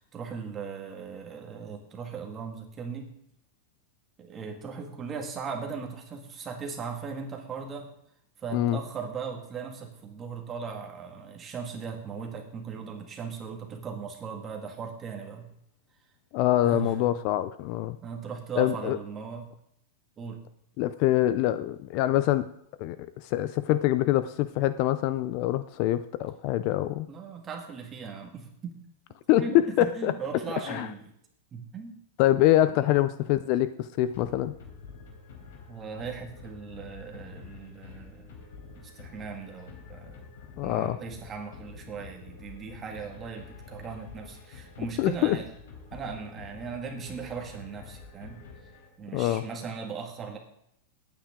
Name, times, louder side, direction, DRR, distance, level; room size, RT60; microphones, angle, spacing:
voice 1, 0.0-3.1 4.2-7.9 8.4-15.5 16.6-17.1 18.0-19.5 20.2-20.4 27.1-28.7 29.3-31.0 31.5-32.0 32.5-32.9 35.7-38.4 38.7-40.3 40.6-45.5 45.9-48.4 49.0-50.4, right 5 dB, 15° right, 2 dB, 1.8 m, -38 dB
voice 2, 16.3-18.0 18.6-19.0 20.8-22.5 22.8-27.1 29.3-30.1 30.7-30.9 32.2-34.5 40.6-41.0 45.0-45.4 49.1-49.5, left 14 dB, 35° left, 13 dB, 0.4 m, -25 dB
sound 1, 34.1-49.2, left 5 dB, 70° left, 3.8 m, -47 dB
18.5 x 8.9 x 3.7 m, 0.74 s
supercardioid pair, 170°, 0 cm